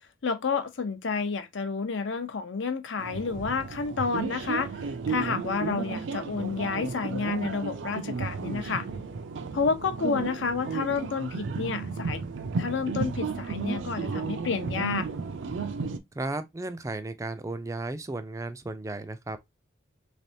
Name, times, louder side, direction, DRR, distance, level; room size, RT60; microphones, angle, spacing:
voice 1, 0.2-4.7 5.1-8.9 9.5-12.2 12.6-15.1, left 5 dB, 75° left, 0.6 m, -30 dB
sound 1, 3.0-16.0, right 5 dB, 75° right, 0.5 m, -33 dB
voice 2, 16.1-19.4, right 2 dB, 15° right, 0.3 m, -34 dB
3.3 x 3.3 x 2.7 m
head